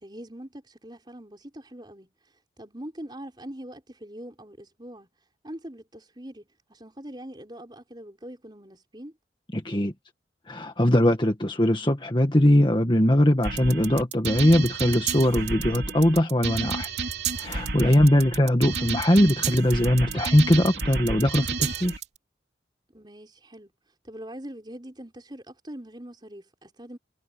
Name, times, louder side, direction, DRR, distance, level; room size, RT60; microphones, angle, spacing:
voice 1, 0.0-2.1 2.6-5.1 5.4-9.1 17.9-18.2 22.9-23.7 24.0-27.0, right 1 dB, 25° right, 5.5 m, -42 dB
voice 2, 9.5-9.9 10.5-16.9 17.4-21.9, left 1 dB, 25° left, 1.7 m, -21 dB
sound 1, 13.4-22.0, right 5 dB, 65° right, 3.3 m, -31 dB
head